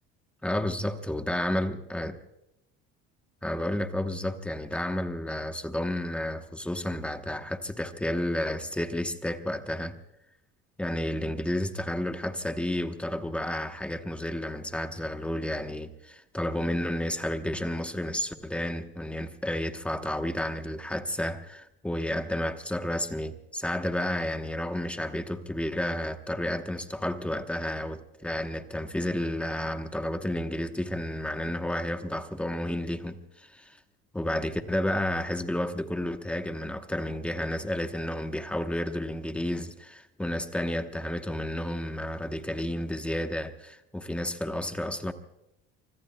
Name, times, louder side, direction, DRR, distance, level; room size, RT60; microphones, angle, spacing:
voice 1, 0.4-2.2 3.4-10.0 10.8-33.8 34.1-45.1, left 1 dB, 5° left, 1.0 m, -31 dB
25.0 x 23.5 x 2.2 m
cardioid pair, 155°, 30 cm